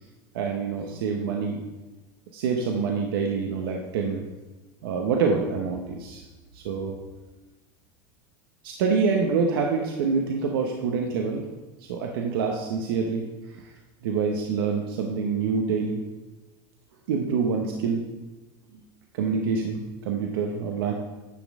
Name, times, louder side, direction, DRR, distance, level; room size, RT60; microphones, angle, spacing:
voice 1, 0.3-1.6 2.3-4.3 4.8-6.2 6.5-7.0 8.6-11.4 11.8-13.7 14.0-16.0 17.1-18.0 18.7-18.8 19.1-20.9, right 5 dB, 85° right, 2 dB, 0.9 m, -26 dB
9.6 x 6.2 x 3.6 m, 1.1 s
supercardioid pair, 125°, 12 cm